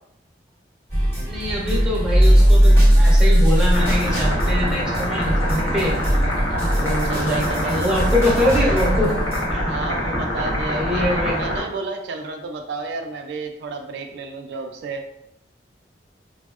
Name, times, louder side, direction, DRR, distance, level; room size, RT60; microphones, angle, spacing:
sound 1, 0.9-9.5, equal, 15° left, 1.0 m, -18 dB
voice 1, 1.2-5.9 6.8-9.1 9.5-9.8 10.7-11.4, left 1 dB, 5° right, -5 dB, 0.8 m, -24 dB
sound 2, 3.7-11.6, equal, 85° left, 1.2 m, -25 dB
voice 2, 7.0-7.9 9.7-15.1, right 3 dB, 70° right, 4 dB, 0.3 m, -31 dB
5.0 x 2.0 x 2.3 m, 0.80 s
head